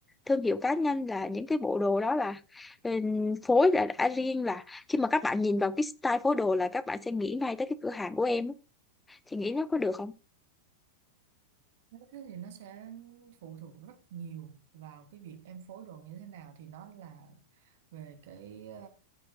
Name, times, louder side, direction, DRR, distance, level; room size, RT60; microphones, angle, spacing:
voice 1, 0.3-8.5 9.3-10.1, left 3 dB, 10° left, 0.6 m, -28 dB
voice 2, 11.9-18.9, right 8 dB, 55° right, 1.8 m, -47 dB
15.0 x 7.7 x 2.6 m
figure-of-eight pair, 90°, 0 cm